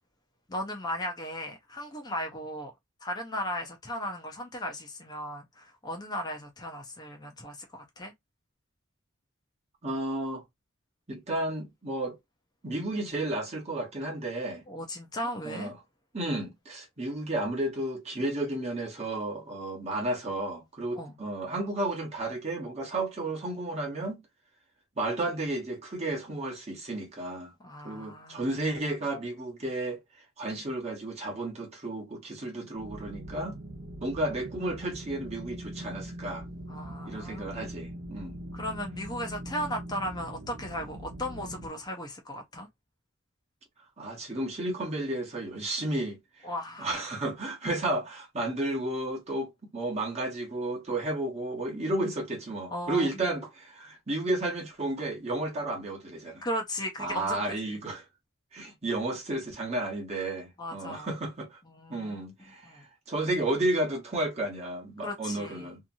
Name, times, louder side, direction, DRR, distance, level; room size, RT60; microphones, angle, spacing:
voice 1, 0.5-2.7 3.0-8.1 14.7-15.7 20.9-21.2 27.6-28.6 36.7-37.6 38.5-42.7 46.4-47.0 52.7-53.1 56.4-57.8 60.6-61.1 61.7-62.3 62.7-62.8 65.0-65.7, equal, 20° left, 0.6 m, -36 dB
voice 2, 9.8-10.4 11.1-12.2 12.6-14.6 15.4-15.8 16.1-24.2 25.0-27.5 27.8-30.0 30.4-33.6 34.0-36.4 37.1-38.4 44.0-46.2 46.8-56.5 57.0-58.0 58.5-61.6 61.9-65.8, right 2 dB, 30° right, 1.0 m, -32 dB
sound 1, 32.8-41.7, right 1 dB, 60° right, 1.0 m, -42 dB
2.8 x 2.5 x 2.6 m
head